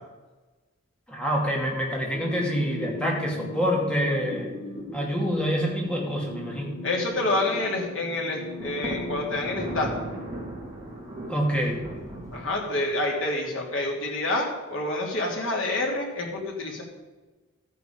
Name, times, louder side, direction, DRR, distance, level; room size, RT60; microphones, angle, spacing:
voice 1, 1.1-4.5 4.9-6.8 11.3-11.8, equal, 5° left, -2 dB, 2.5 m, -26 dB
sound 1, 2.1-11.1, left 2 dB, 35° left, 3.8 m, -39 dB
voice 2, 6.8-9.9 12.3-16.8, left 2 dB, 75° left, -1 dB, 3.2 m, -28 dB
Thunder, 8.6-13.2, right 1 dB, 15° right, 3.0 m, -37 dB
13.5 x 9.3 x 5.2 m, 1.2 s
head